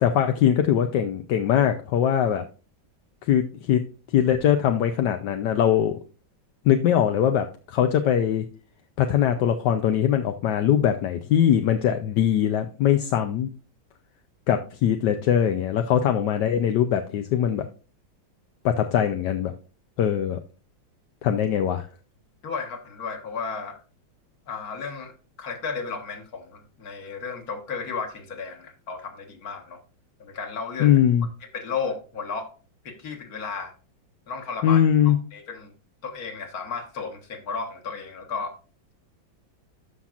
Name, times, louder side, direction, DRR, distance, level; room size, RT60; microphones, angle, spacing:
voice 1, 0.0-2.4 3.3-3.8 4.1-6.0 6.6-8.4 9.0-13.5 14.5-17.7 18.6-19.5 20.0-20.4 21.2-21.9 30.8-31.3 34.6-35.2, left 9 dB, 70° left, 7 dB, 1.2 m, -21 dB
voice 2, 22.4-23.8 24.5-29.8 30.2-30.9 31.5-32.5 32.9-33.7 34.3-35.7 36.0-38.5, left 5 dB, 50° left, 4 dB, 1.8 m, -34 dB
13.0 x 5.7 x 2.5 m, 0.35 s
omnidirectional pair, 2.1 m